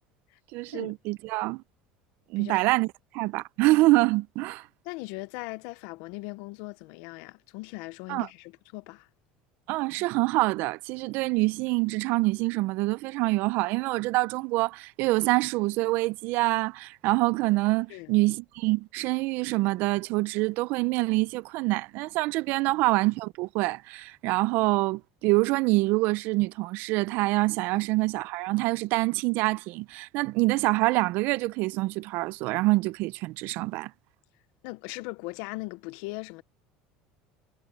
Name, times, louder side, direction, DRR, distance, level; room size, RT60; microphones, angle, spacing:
voice 1, 0.5-1.6 2.3-2.9 3.1-4.7 8.1-8.3 9.7-33.9, right 21 dB, 65° right, 0.6 m, -26 dB
voice 2, 4.8-9.1 17.9-18.1 22.7-22.8 34.6-36.4, left 23 dB, 75° left, 1.0 m, -39 dB
supercardioid pair, 100°, 4 cm